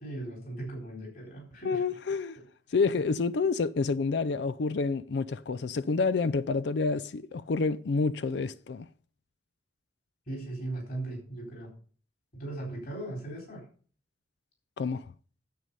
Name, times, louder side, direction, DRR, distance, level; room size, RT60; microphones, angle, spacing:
voice 1, 0.0-1.8 10.3-11.7 12.3-13.7, right 2 dB, 50° left, 4.1 m, -38 dB
voice 2, 1.6-2.4 2.7-8.9 14.8-15.1, left 4 dB, 65° left, 0.4 m, -28 dB
9.5 x 7.9 x 5.4 m
head